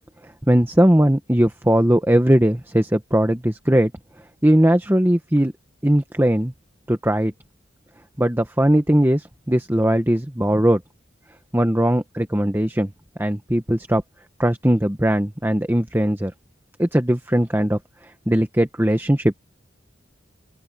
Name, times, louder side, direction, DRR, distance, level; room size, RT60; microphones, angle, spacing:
voice 1, 0.5-3.9 4.4-5.5 5.8-6.5 6.9-7.3 8.2-10.8 11.5-12.9 13.2-14.0 14.4-16.3 16.8-17.8 18.3-19.3, right 1 dB, 10° right, 1.3 m, -19 dB
open air
head